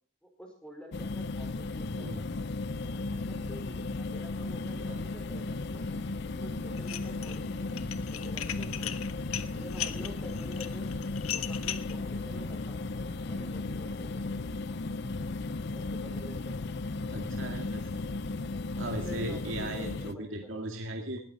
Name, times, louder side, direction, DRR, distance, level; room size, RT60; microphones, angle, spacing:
voice 1, 0.2-2.3 2.8-5.8 6.4-9.1 9.5-10.9 11.3-12.8 13.2-14.6 15.7-16.7 18.9-20.6, equal, 5° left, 2 dB, 4.7 m, -49 dB
sound 1, 0.9-20.1, left 3 dB, 55° left, 0.6 m, -35 dB
Organ, 4.1-14.9, left 1 dB, 35° left, 3.1 m, -54 dB
Dishes pots and pans, 6.8-7.4 7.7-11.9, left 11 dB, 85° left, 1.0 m, -37 dB
voice 2, 17.1-17.9 18.8-21.2, right 1 dB, 65° right, 3 dB, 2.1 m, -37 dB
19.5 x 14.0 x 4.2 m, 0.42 s
head